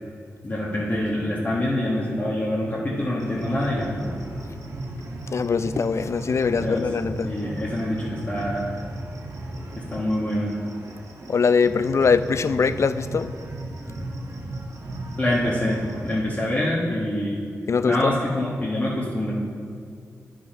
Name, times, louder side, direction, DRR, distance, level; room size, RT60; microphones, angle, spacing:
voice 1, 0.4-4.1 6.6-6.9 7.2-8.7 9.8-10.5 15.2-17.4 17.8-19.3, left 1 dB, 30° left, -7 dB, 1.4 m, -25 dB
sound 1, 3.2-16.2, right 1 dB, 65° right, 1.2 m, -35 dB
voice 2, 5.3-7.3 11.3-13.3 17.7-18.0, left 5 dB, 55° left, 13 dB, 0.3 m, -22 dB
9.7 x 5.1 x 5.3 m, 2.2 s
cardioid pair, 55°, 6 cm